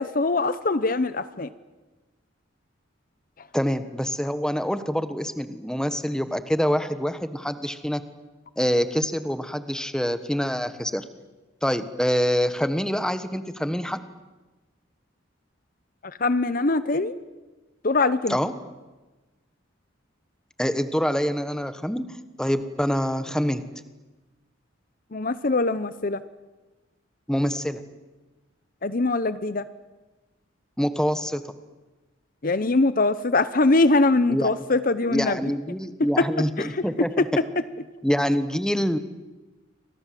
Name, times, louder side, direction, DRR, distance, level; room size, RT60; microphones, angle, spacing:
voice 1, 0.0-1.5 16.0-17.2 17.8-18.4 25.1-26.2 28.8-29.6 32.4-35.4 36.2-36.3 36.6-36.8 37.2-37.3, left 3 dB, 45° left, 14 dB, 0.8 m, -22 dB
voice 2, 3.5-8.0 8.6-11.0 11.6-14.0 18.3-18.5 20.6-22.0 22.4-23.6 27.3-27.8 30.8-31.4 34.3-34.5 35.1-37.3 38.0-39.0, equal, 5° left, 10 dB, 1.3 m, -25 dB
30.0 x 25.0 x 7.6 m, 1.2 s
head